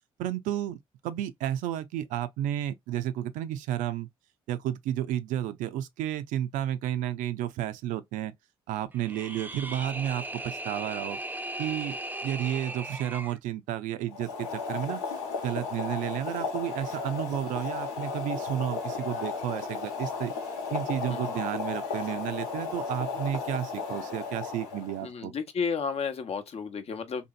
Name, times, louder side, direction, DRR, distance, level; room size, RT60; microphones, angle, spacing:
voice 1, 0.2-4.1 4.5-8.3 8.7-11.2 11.6-15.0 15.4-20.3 20.7-25.3, right 11 dB, 70° right, 0.4 m, -32 dB
sound 1, 8.9-13.4, right 1 dB, 15° right, 0.4 m, -37 dB
Boiling, 14.1-25.1, left 5 dB, 85° left, 0.8 m, -34 dB
voice 2, 25.0-27.3, left 6 dB, 50° left, 0.7 m, -32 dB
2.7 x 2.7 x 2.3 m
hypercardioid pair, 50°, 14 cm